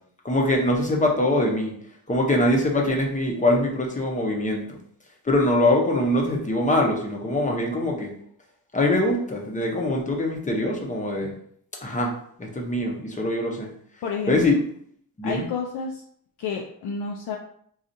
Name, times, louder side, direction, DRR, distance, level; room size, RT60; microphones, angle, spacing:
voice 1, 0.2-1.7 2.1-4.8 5.2-8.1 8.7-11.3 11.8-12.1 12.4-13.7 14.3-14.5 15.2-15.4, left 1 dB, 20° left, 0 dB, 0.6 m, -23 dB
voice 2, 14.0-14.4 15.2-16.0 16.4-17.4, left 5 dB, 75° left, 0 dB, 0.5 m, -30 dB
4.1 x 2.4 x 2.6 m, 0.63 s
wide cardioid pair, 130°, 40 cm